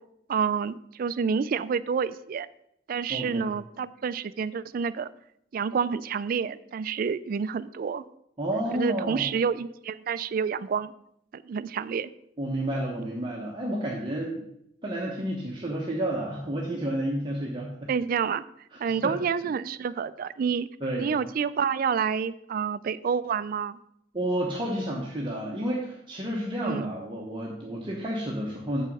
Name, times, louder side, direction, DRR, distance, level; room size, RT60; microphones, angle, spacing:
voice 1, 0.3-2.5 2.9-5.1 5.5-8.0 8.7-10.9 11.3-12.1 17.9-18.4 18.8-20.7 21.0-23.8 26.6-26.9, right 6 dB, 50° right, 16 dB, 0.3 m, -28 dB
voice 2, 3.1-3.5 8.4-9.2 12.4-14.4 14.8-17.9 18.7-19.1 19.4-19.5 20.8-21.1 24.1-28.8, right 1 dB, 25° right, -3 dB, 1.0 m, -30 dB
7.2 x 5.4 x 5.4 m, 0.76 s
head